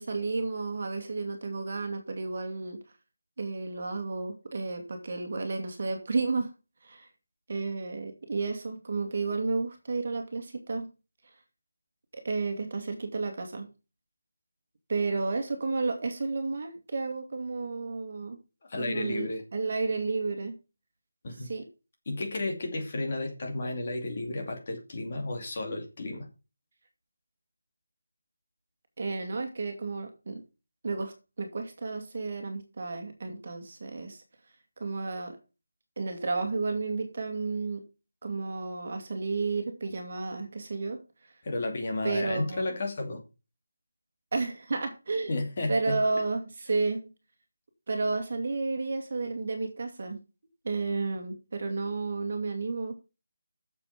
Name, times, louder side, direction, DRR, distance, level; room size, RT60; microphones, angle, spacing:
voice 1, 0.0-2.8 3.4-6.5 6.8-7.1 7.5-10.9 12.1-13.7 14.9-18.4 18.8-20.5 21.4-21.7 29.0-30.4 30.8-34.2 34.8-35.4 36.0-37.8 38.2-41.0 42.0-42.6 44.3-45.4 45.7-47.1 47.9-50.2 50.6-52.9, right 3 dB, 35° right, 5 dB, 2.3 m, -32 dB
voice 2, 18.7-19.4 21.2-21.5 22.1-26.3 41.4-43.2 45.3-46.0, left 2 dB, 30° left, 2 dB, 2.6 m, -32 dB
8.8 x 7.2 x 5.9 m, 0.30 s
figure-of-eight pair, 180°, 0 cm